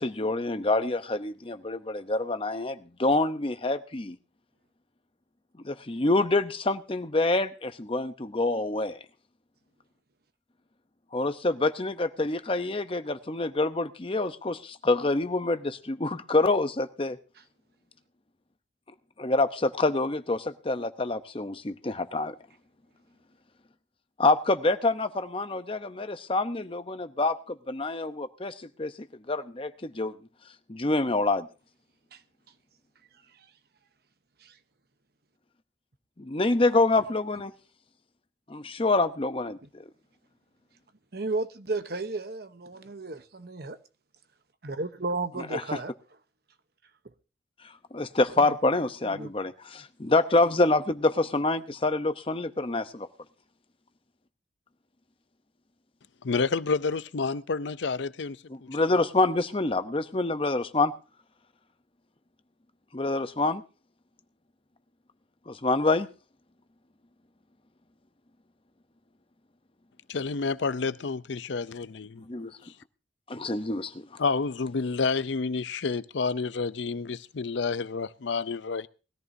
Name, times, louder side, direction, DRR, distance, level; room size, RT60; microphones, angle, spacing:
voice 1, 0.0-4.2 5.6-9.0 11.1-17.2 19.2-22.3 24.2-28.9 29.3-30.1 30.7-31.5 36.2-37.5 38.5-39.8 45.4-45.8 47.9-53.1 58.5-60.9 62.9-63.6 65.5-66.1 72.2-72.6 73.3-74.1, left 2 dB, 30° left, 0.8 m, -26 dB
voice 2, 41.1-43.8 44.6-45.9 48.4-48.5 49.0-49.3, right 3 dB, 55° right, 1.0 m, -33 dB
voice 3, 56.2-58.4 58.7-58.8 70.1-72.2 74.2-78.9, left 4 dB, 75° left, 0.6 m, -29 dB
20.0 x 14.0 x 2.7 m
head